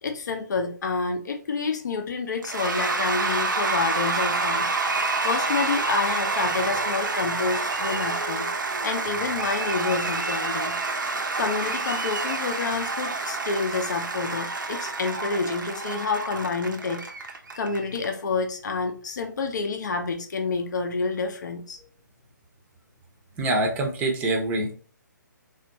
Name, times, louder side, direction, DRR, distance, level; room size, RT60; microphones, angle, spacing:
voice 1, 0.0-10.8 11.4-17.1 17.5-21.8, left 4 dB, 65° left, 5 dB, 0.6 m, -28 dB
Cheering / Applause / Crowd, 2.4-18.1, right 3 dB, 80° right, 0.6 m, -28 dB
voice 2, 23.4-24.7, right 2 dB, 15° right, 2 dB, 0.5 m, -25 dB
3.4 x 2.4 x 2.9 m, 0.41 s
figure-of-eight pair, 140°, 10 cm